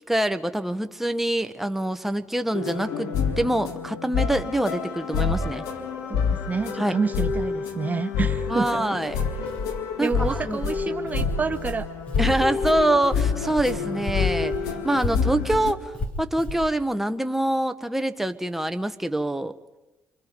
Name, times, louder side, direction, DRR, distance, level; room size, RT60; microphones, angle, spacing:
voice 1, 0.1-5.6 6.8-7.0 8.5-9.2 10.0-10.6 12.2-14.5 14.8-15.9 16.2-19.5, right 1 dB, 5° right, 8 dB, 1.1 m, -25 dB
sound 1, 2.5-15.7, left 6 dB, 90° left, 1.9 m, -28 dB
voice 2, 6.1-8.8 10.0-11.9, right 5 dB, 30° right, 7 dB, 0.7 m, -28 dB
Walk footsteps, 9.0-13.8 14.0-16.7, left 2 dB, 30° left, 4.2 m, -32 dB
29.0 x 23.5 x 5.2 m, 1.0 s
cardioid pair, 85°, 5 cm